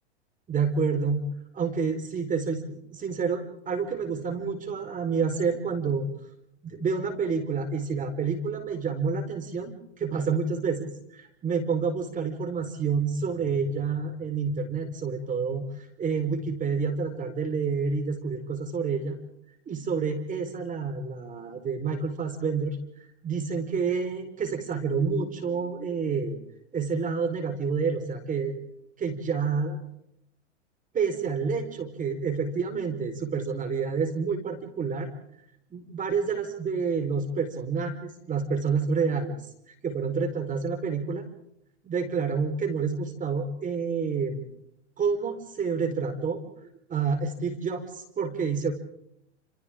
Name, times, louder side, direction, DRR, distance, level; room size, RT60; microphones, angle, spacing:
voice 1, 0.5-1.3 1.5-6.1 6.6-15.6 16.0-19.2 19.7-22.8 23.2-26.4 26.7-28.6 29.0-29.8 30.9-35.1 35.7-39.5 39.8-41.3 41.8-44.4 45.0-46.5 46.9-48.7, right 5 dB, 20° right, 6 dB, 4.5 m, -28 dB
29.5 x 28.5 x 3.8 m, 0.73 s
hypercardioid pair, 115°, 35 cm